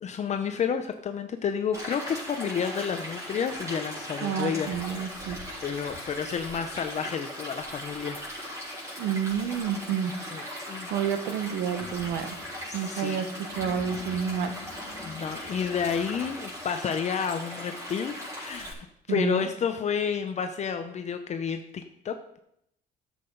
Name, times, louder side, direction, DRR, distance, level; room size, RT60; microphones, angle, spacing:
voice 1, 0.0-4.7 5.6-8.6 10.3-10.4 10.7-10.9 12.7-13.2 15.0-18.7 19.1-22.4, left 7 dB, 40° left, 7 dB, 0.7 m, -30 dB
Stream, 1.7-18.7, equal, 15° right, 5.1 m, -39 dB
voice 2, 4.2-5.6 9.0-10.5 10.9-12.4 12.7-14.5 19.1-19.5, right 8 dB, 85° right, 9 dB, 1.1 m, -30 dB
sound 1, 11.8-12.8 13.1-13.2 13.5-16.9, left 5 dB, 70° left, 1.8 m, -47 dB
13.0 x 7.7 x 4.0 m, 0.76 s
cardioid pair, 110°, 17 cm